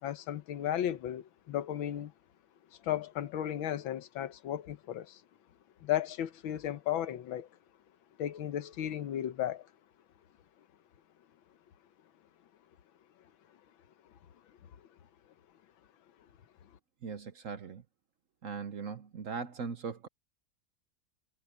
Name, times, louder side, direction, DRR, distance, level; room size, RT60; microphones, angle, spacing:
voice 1, 0.0-2.1 2.8-5.2 5.8-7.5 8.2-9.7, left 11 dB, 90° left, 1.8 m, -34 dB
voice 2, 17.0-17.8 18.4-20.1, right 5 dB, 55° right, 1.0 m, -39 dB
omnidirectional pair, 2.1 m